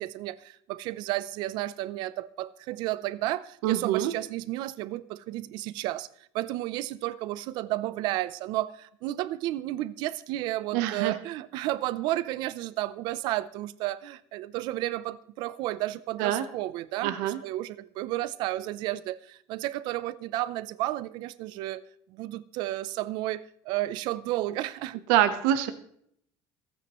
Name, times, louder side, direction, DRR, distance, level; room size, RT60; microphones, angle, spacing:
voice 1, 0.0-6.1 6.3-21.8 22.1-25.0, right 16 dB, 60° right, 17 dB, 0.6 m, -32 dB
voice 2, 3.6-4.1 10.7-11.1 16.2-16.4 17.0-17.4 25.1-25.7, right 12 dB, 90° right, 9 dB, 0.9 m, -25 dB
27.5 x 9.2 x 3.1 m, 0.67 s
cardioid pair, 165°, 9 cm